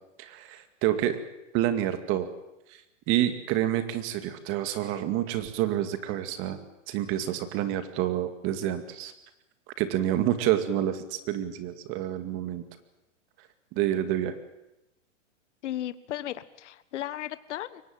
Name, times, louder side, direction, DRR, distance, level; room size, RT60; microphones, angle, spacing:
voice 1, 0.2-1.2 1.5-2.3 2.7-2.8 3.1-6.6 6.9-9.1 9.8-12.6 13.7-14.4, right 12 dB, 30° right, 10 dB, 2.3 m, -28 dB
voice 2, 15.6-17.8, left 12 dB, 65° left, 15 dB, 1.5 m, -35 dB
23.0 x 18.5 x 9.0 m, 0.92 s
hypercardioid pair, 145°, 39 cm